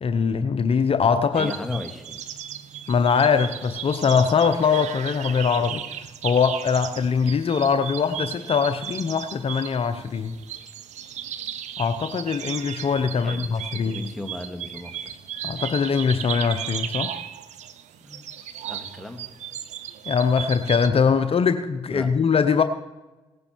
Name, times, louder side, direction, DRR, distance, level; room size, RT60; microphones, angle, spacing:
voice 1, 0.0-1.5 2.9-6.0 6.2-10.3 11.8-14.0 15.4-17.1 20.1-22.6, left 6 dB, 50° left, 9 dB, 0.8 m, -22 dB
voice 2, 1.3-2.2 13.2-15.2 18.0-18.2 18.6-19.2 21.9-22.1, left 1 dB, ahead, 4 dB, 2.2 m, -36 dB
sound 1, 1.3-20.9, right 10 dB, 75° right, 0.8 m, -36 dB
18.0 x 9.7 x 4.6 m, 1.1 s
supercardioid pair, 45°, 12 cm